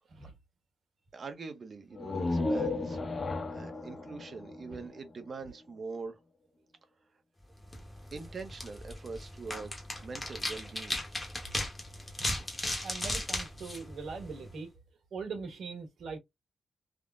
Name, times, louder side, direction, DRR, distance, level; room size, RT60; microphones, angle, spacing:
voice 1, 1.1-6.2 8.1-11.0, right 4 dB, 40° right, 0.6 m, -43 dB
sound 1, 1.9-5.6, left 2 dB, 35° left, 0.5 m, -34 dB
sound 2, 7.6-14.6, left 1 dB, 15° left, 0.9 m, -37 dB
voice 2, 12.8-14.7 15.1-16.2, right 4 dB, 80° right, 1.4 m, -41 dB
3.6 x 2.0 x 2.4 m
wide cardioid pair, 150°, 0 cm